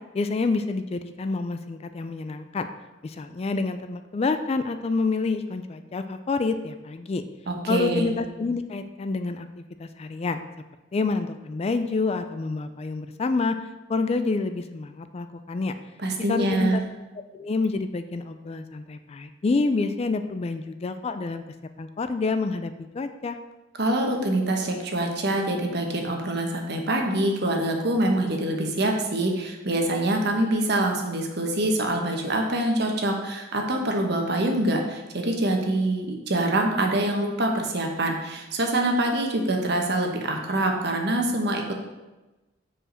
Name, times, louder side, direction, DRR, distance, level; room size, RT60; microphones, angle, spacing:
voice 1, 0.1-2.7 3.0-7.2 7.7-10.4 10.9-13.6 13.9-15.7 16.3-16.8 17.3-21.4 21.8-23.4, left 3 dB, 35° left, 9 dB, 0.3 m, -28 dB
voice 2, 7.5-8.1 16.0-16.8 23.8-41.8, right 1 dB, 60° right, 2 dB, 1.1 m, -25 dB
5.0 x 4.9 x 6.3 m, 1.1 s
head